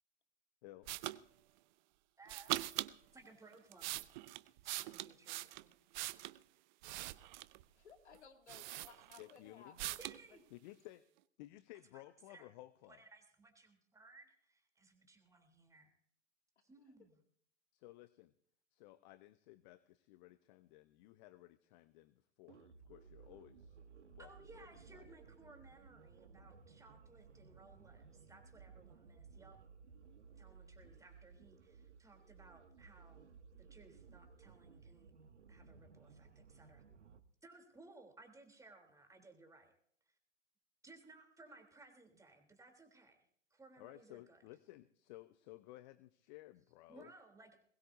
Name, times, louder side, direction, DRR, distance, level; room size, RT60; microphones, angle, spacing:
voice 1, 0.6-1.0 9.2-9.8 10.5-11.0 11.4-13.0 17.8-18.3 18.7-25.1 43.8-47.1, left 17 dB, 40° left, 14 dB, 0.8 m, -57 dB
sound 1, 0.9-1.2 2.3-2.9 3.5-6.4 6.8-7.6 8.1-8.2 8.5-9.4 9.8-10.2, right 18 dB, 40° right, 0.6 m, -42 dB
voice 2, 2.2-2.8 3.1-4.0 4.6-5.7 9.0-9.1 9.8-10.4 11.9-12.0 12.3-12.5 12.9-15.9 16.6-17.2 24.2-29.6 30.4-33.3 33.6-35.1 35.5-36.8 37.4-39.7 40.1-40.2 40.8-44.4 46.9-47.6, right 3 dB, 10° right, 4 dB, 3.4 m, -61 dB
voice 3, 7.8-10.0 10.3-10.4, left 6 dB, 65° left, 5 dB, 2.5 m, -60 dB
sound 2, 22.5-37.2, right 5 dB, 70° right, 1.4 m, -59 dB
21.5 x 19.5 x 2.7 m, 0.62 s
figure-of-eight pair, 95°, 36 cm